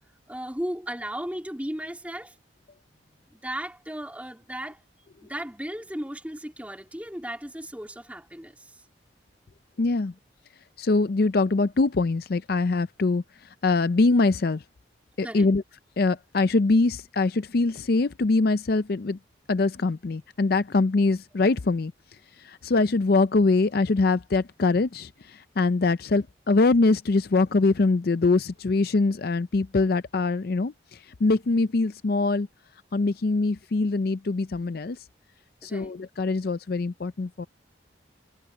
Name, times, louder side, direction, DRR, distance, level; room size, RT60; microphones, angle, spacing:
voice 1, 0.3-2.3 3.3-4.8 5.2-8.7 15.2-15.5 35.6-35.9, right 1 dB, 10° right, 3.0 m, -35 dB
voice 2, 9.8-10.1 10.8-13.2 13.6-14.6 15.2-15.6 16.0-19.2 19.5-21.9 22.4-32.5 32.9-35.0 35.6-37.5, left 3 dB, 55° left, 0.5 m, -23 dB
head